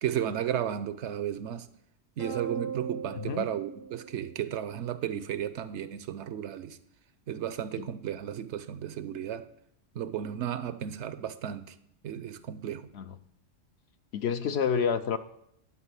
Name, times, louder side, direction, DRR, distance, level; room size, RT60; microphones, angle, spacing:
voice 1, 0.0-1.7 2.2-6.8 7.3-9.5 9.9-11.7 12.0-12.9, right 10 dB, 70° right, 14 dB, 0.9 m, -34 dB
sound 1, 2.2-4.8, right 5 dB, 80° left, 4.5 m, -39 dB
voice 2, 14.1-15.2, left 6 dB, 65° left, 11 dB, 0.8 m, -28 dB
11.5 x 5.0 x 8.3 m, 0.74 s
omnidirectional pair, 1.3 m